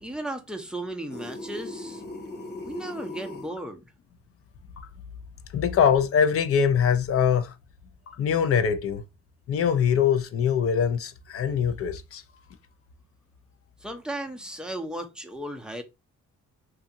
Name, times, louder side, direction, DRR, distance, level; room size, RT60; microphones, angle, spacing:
voice 1, 0.0-2.0 2.6-3.8 13.8-15.8, right 1 dB, 5° right, 0.5 m, -35 dB
sound 1, 1.1-3.5, left 1 dB, 35° left, 0.9 m, -38 dB
voice 2, 5.5-7.5 8.1-9.0 9.5-12.2, left 7 dB, 50° left, 0.5 m, -23 dB
2.7 x 2.4 x 2.6 m
cardioid pair, 90°, 30 cm